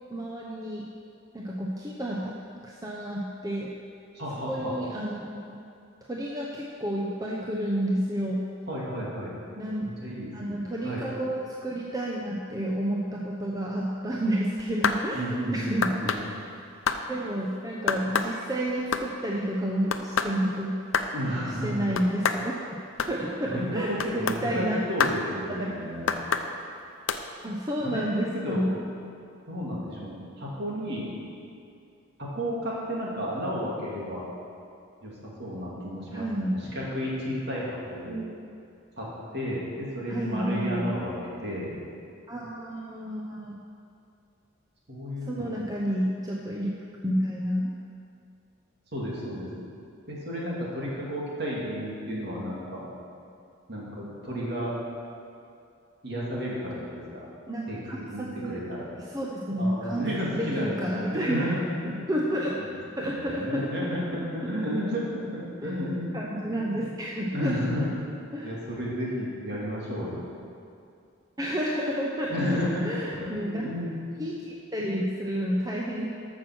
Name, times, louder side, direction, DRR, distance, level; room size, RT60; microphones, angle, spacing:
voice 1, 0.1-0.9 1.3-2.3 2.6-3.7 4.4-5.2 5.5-5.6 6.1-8.4 9.6-9.8 10.3-16.3 17.1-20.8 21.6-22.5 23.1-24.8 25.5-25.9 27.4-28.8 36.1-36.5 38.1-38.5 40.1-40.9 42.3-43.6 45.3-46.7 47.0-47.7 57.5-58.6 59.1-61.5 62.1-62.7 63.0-63.9 64.4-64.5 65.6-65.7 66.1-67.9 68.3-68.5 71.4-73.6 74.2-76.1, equal, 20° right, -3 dB, 0.8 m, -30 dB
voice 2, 4.1-4.7 8.7-9.3 9.8-10.6 10.8-11.0 15.1-16.3 21.1-21.9 23.5-26.1 27.8-28.7 29.0-29.1 29.5-31.1 32.2-34.2 35.0-38.2 39.0-39.1 39.3-41.7 44.9-45.6 48.9-49.7 50.1-52.8 53.7-54.7 56.0-57.2 57.7-57.8 58.1-58.9 59.6-62.0 62.6-62.7 63.0-66.1 66.5-66.8 67.3-68.0 68.4-70.2 72.3-72.8 73.2-74.0, equal, 50° right, -5 dB, 2.8 m, -32 dB
sound 1, 14.6-15.0 15.8-16.2 16.9-17.0 17.9-18.3 18.7-19.1 19.9-20.3 20.9-21.1 22.0-22.4 23.0-23.1 24.0-24.4 25.0-25.2 26.1-26.5 27.1-27.2, left 5 dB, 75° left, 0.6 m, -26 dB
14.0 x 6.2 x 6.2 m, 2.5 s
head